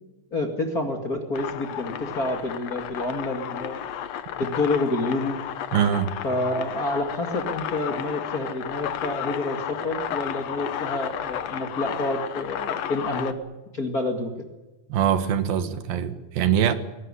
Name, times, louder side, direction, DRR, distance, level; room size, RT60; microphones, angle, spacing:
voice 1, 0.3-3.8 4.4-5.4 6.2-13.3 13.7-14.3, left 2 dB, 30° left, 1.9 m, -28 dB
sound 1, 1.3-13.3, left 9 dB, 65° left, 1.8 m, -33 dB
voice 2, 5.7-6.1 14.9-16.8, right 9 dB, 80° right, 3.3 m, -23 dB
22.0 x 18.5 x 9.8 m
omnidirectional pair, 4.2 m